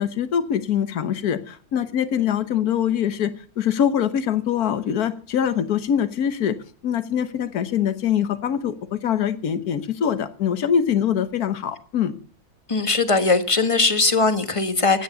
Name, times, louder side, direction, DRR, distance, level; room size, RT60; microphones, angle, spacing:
voice 1, 0.0-6.6 6.8-12.1, left 9 dB, 80° left, 12 dB, 1.6 m, -23 dB
voice 2, 12.7-15.0, left 3 dB, 20° left, 9 dB, 1.3 m, -20 dB
16.0 x 10.5 x 6.9 m, 0.42 s
omnidirectional pair, 1.6 m